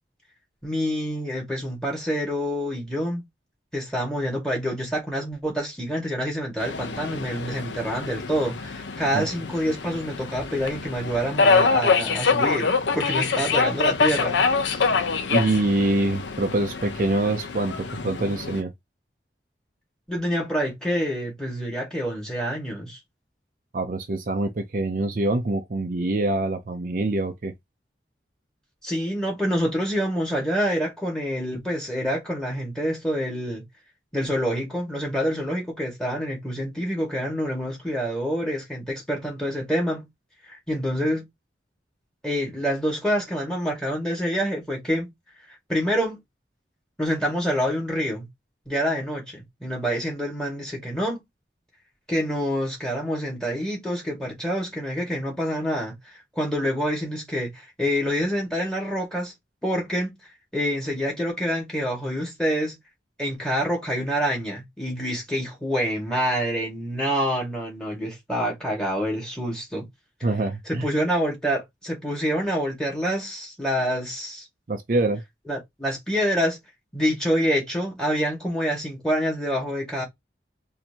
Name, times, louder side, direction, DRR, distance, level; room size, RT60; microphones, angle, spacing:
voice 1, 0.6-3.2 3.7-14.4 20.1-23.0 28.8-33.7 34.1-40.1 40.5-41.3 42.2-45.1 45.7-46.2 47.0-48.3 48.7-51.2 52.1-56.0 56.4-59.3 59.6-60.2 60.5-62.8 63.2-69.9 70.7-74.4 75.5-76.6 76.9-80.0, equal, 5° left, 1.8 m, -27 dB
Subway metro underground, 6.6-18.6, left 4 dB, 90° left, 0.7 m, -25 dB
voice 2, 15.3-18.7 23.7-27.5 70.2-70.9 74.7-75.2, right 2 dB, 45° right, 0.5 m, -25 dB
4.3 x 2.8 x 2.8 m
head